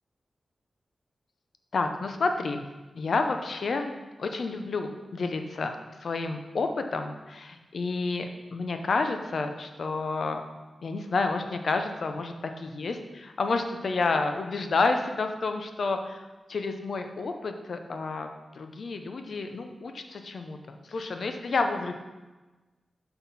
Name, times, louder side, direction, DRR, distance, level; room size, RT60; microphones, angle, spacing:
voice 1, 1.7-2.6 2.9-3.9 4.2-5.7 6.0-10.4 10.8-13.0 13.4-18.3 18.5-21.9, left 3 dB, 70° left, 6 dB, 0.7 m, -30 dB
6.0 x 5.8 x 4.1 m, 1.2 s
cardioid pair, 65°, 0 cm